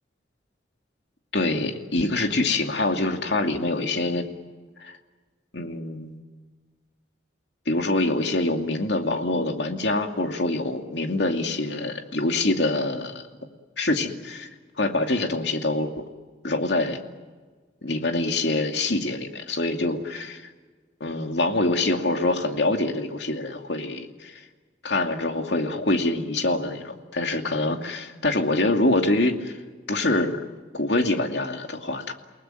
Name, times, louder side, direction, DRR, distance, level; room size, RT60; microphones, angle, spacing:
voice 1, 1.3-4.2 4.8-4.9 5.5-6.2 7.7-13.3 13.8-14.5 14.8-16.0 16.4-17.0 17.8-20.5 21.0-24.4 24.8-29.5 29.9-30.4 30.7-32.1, left 2 dB, 65° left, 4 dB, 2.5 m, -25 dB
29.5 x 19.0 x 9.2 m, 1.4 s
head